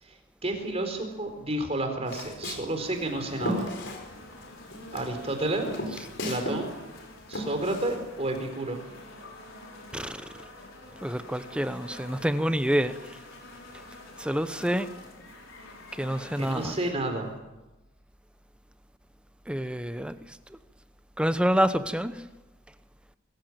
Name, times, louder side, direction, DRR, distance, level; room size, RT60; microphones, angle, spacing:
voice 1, 0.0-3.7 4.9-5.7 6.2-6.7 7.3-8.8 16.4-17.3, right 1 dB, 30° right, 4 dB, 4.1 m, -31 dB
Walk footsteps, 2.0-4.5 4.7-6.6 6.9-8.4, left 1 dB, 60° left, 4.8 m, -35 dB
sound 1, 2.8-16.9, left 2 dB, 80° left, 5.2 m, -47 dB
voice 2, 9.9-10.2 11.0-13.2 14.2-14.9 15.9-16.7 19.5-20.2 21.2-22.2, equal, 5° right, 11 dB, 0.9 m, -27 dB
24.0 x 15.5 x 9.1 m, 1.1 s
head